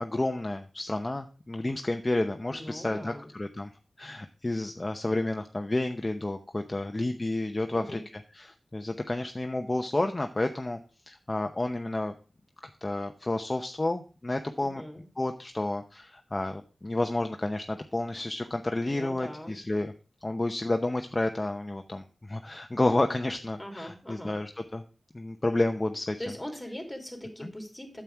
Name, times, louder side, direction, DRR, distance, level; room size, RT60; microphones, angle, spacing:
voice 1, 0.0-3.7 4.0-8.0 8.3-10.8 11.1-12.1 12.6-14.8 15.2-19.9 20.2-24.8 25.1-26.2 27.4-27.5, left 2 dB, 30° left, 6 dB, 0.8 m, -30 dB
voice 2, 2.5-3.3 7.7-8.0 14.6-15.0 18.8-19.6 23.6-24.4 26.2-28.0, equal, 10° left, 3 dB, 2.9 m, -41 dB
9.1 x 7.5 x 4.6 m, 0.35 s
wide cardioid pair, 60°, 0 cm